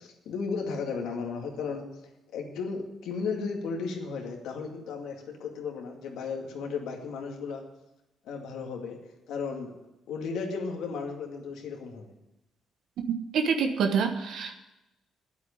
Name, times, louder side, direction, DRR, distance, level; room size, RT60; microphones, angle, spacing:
voice 1, 0.0-1.9 2.3-7.6 8.2-9.0 9.3-9.7 10.1-12.1, left 5 dB, 85° left, 2 dB, 2.3 m, -34 dB
voice 2, 13.3-14.6, right 6 dB, 75° right, 5 dB, 1.3 m, -26 dB
9.6 x 8.3 x 9.6 m, 0.94 s
cardioid pair, 90°, 0 cm